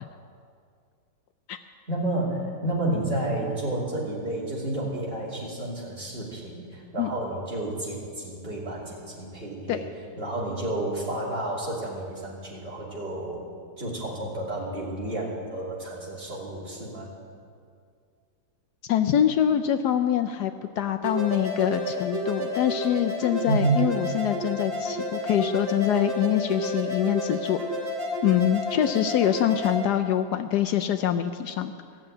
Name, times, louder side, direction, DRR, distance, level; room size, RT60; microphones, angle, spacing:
voice 1, 1.9-9.9 10.2-13.4 13.8-17.1 23.4-23.9, right 2 dB, 30° right, -5 dB, 3.0 m, -30 dB
voice 2, 18.9-27.6 28.2-31.7, left 10 dB, 75° left, 7 dB, 1.1 m, -24 dB
sound 1, 21.0-29.8, left 1 dB, 10° right, 3.7 m, -30 dB
16.0 x 7.3 x 8.8 m, 2.2 s
omnidirectional pair, 1.9 m